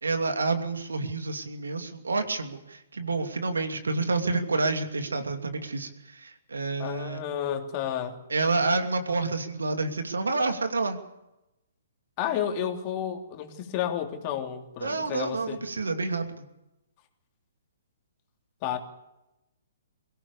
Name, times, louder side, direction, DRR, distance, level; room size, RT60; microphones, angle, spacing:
voice 1, 0.0-7.2 8.3-11.0 14.8-16.4, right 3 dB, 75° right, 6 dB, 2.7 m, -29 dB
voice 2, 6.8-8.1 12.2-15.6 18.6-18.8, left 9 dB, 35° left, 4 dB, 3.1 m, -31 dB
23.5 x 17.0 x 6.9 m, 0.91 s
figure-of-eight pair, 125°, 0 cm